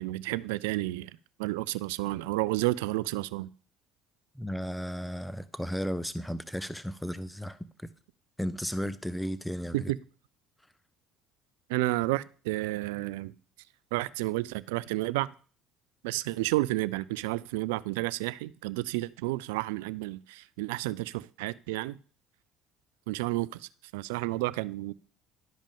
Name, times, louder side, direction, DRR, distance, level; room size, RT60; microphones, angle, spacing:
voice 1, 0.0-3.5 9.7-10.0 11.7-13.3 13.9-15.3 16.0-22.0 23.1-24.9, right 19 dB, 80° right, 0.3 m, -31 dB
voice 2, 4.4-7.9 8.4-9.9, equal, 5° left, 0.5 m, -34 dB
11.5 x 5.1 x 3.6 m
hypercardioid pair, 70°, 0 cm